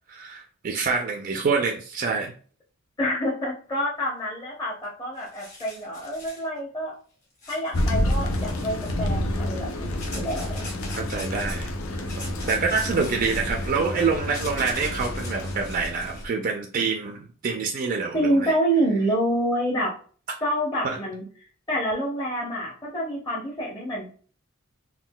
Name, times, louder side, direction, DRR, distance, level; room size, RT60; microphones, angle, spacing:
voice 1, 0.1-2.3 11.0-12.1 12.4-18.5 20.8-21.0, right 5 dB, 45° right, 2 dB, 0.4 m, -26 dB
voice 2, 3.0-6.9 7.5-10.6 18.1-19.9 20.4-21.2 21.7-24.1, right 1 dB, 20° left, -5 dB, 0.7 m, -27 dB
sound 1, 4.8-4.9 5.2-6.5 7.4-9.1 10.0-11.6 12.1-16.2, left 2 dB, 40° left, 1.3 m, -42 dB
Thunder, 7.7-16.3, left 1 dB, 85° left, 0.6 m, -29 dB
3.7 x 2.2 x 2.2 m, 0.42 s
head